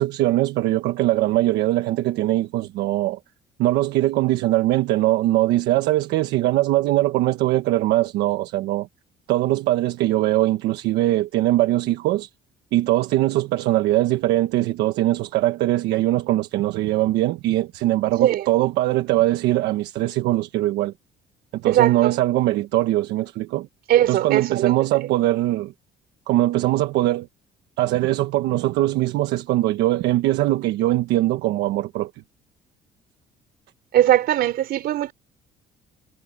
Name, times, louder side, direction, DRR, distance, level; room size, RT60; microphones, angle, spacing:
voice 1, 0.0-3.2 3.6-8.9 9.3-12.3 12.7-20.9 21.5-23.7 24.1-25.7 26.3-27.3 27.8-32.1, right 16 dB, 90° right, 1.3 m, -21 dB
voice 2, 21.6-22.1 23.9-24.7 33.9-35.1, right 12 dB, 70° right, 3.4 m, -19 dB
cardioid pair, 110°, 17 cm